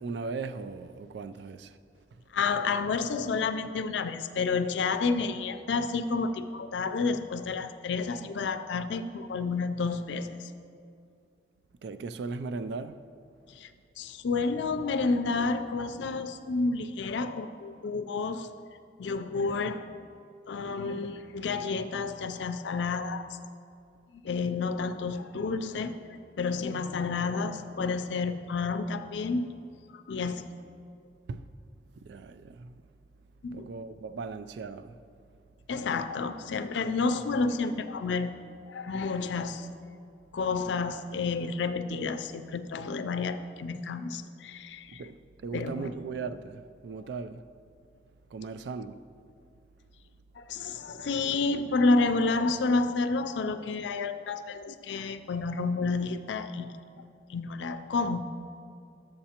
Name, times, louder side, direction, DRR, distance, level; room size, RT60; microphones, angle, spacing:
voice 1, 0.0-1.8 11.8-13.0 31.3-31.5 32.0-32.8 33.5-35.0 45.0-45.2 45.4-47.4 48.3-49.0, right 4 dB, 75° right, 0.3 m, -38 dB
voice 2, 2.3-10.5 13.6-13.7 14.0-18.5 19.0-19.8 20.5-23.3 24.2-25.9 26.4-29.5 30.1-30.5 33.4-33.7 35.7-38.3 38.7-39.7 40.3-45.0 45.5-45.9 50.4-56.7 57.3-58.2, left 4 dB, 85° left, 0.4 m, -30 dB
11.5 x 7.7 x 2.9 m
head